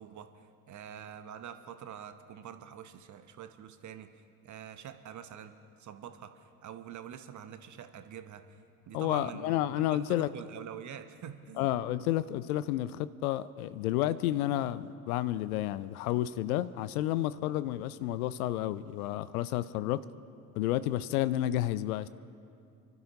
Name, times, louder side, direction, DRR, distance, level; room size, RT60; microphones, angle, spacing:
voice 1, 0.0-8.6 8.9-11.8, right 9 dB, 40° right, 9 dB, 1.0 m, -46 dB
voice 2, 8.9-10.3 11.6-20.0 20.6-22.1, left 14 dB, 70° left, 17 dB, 0.6 m, -31 dB
29.0 x 12.0 x 3.0 m, 2.5 s
figure-of-eight pair, 60°, 46 cm